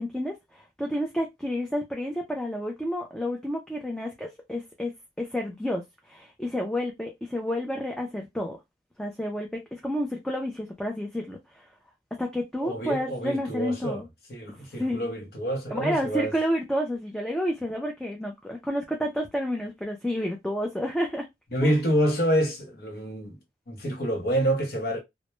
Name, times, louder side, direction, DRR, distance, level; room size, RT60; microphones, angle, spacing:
voice 1, 0.0-4.9 5.2-8.6 9.0-9.5 9.8-11.6 12.2-14.1 14.8-15.1 15.7-21.3 21.6-21.7, equal, 5° left, 0.3 m, -30 dB
voice 2, 12.6-14.0 14.3-16.3 21.5-23.4 23.7-25.0, equal, 60° left, 0.7 m, -27 dB
2.1 x 2.0 x 2.9 m
head